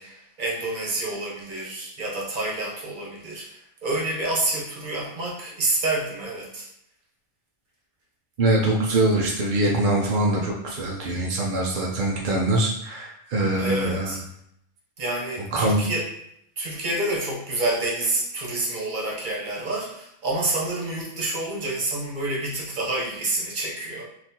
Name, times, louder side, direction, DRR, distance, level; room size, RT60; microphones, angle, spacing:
voice 1, 0.0-6.7 13.6-14.2 15.0-16.1 16.6-24.0, right 2 dB, 40° right, -4 dB, 0.9 m, -28 dB
voice 2, 8.4-14.2 15.5-15.9, right 2 dB, 70° right, -2 dB, 0.4 m, -23 dB
4.0 x 2.5 x 2.8 m, 0.75 s
omnidirectional pair, 1.5 m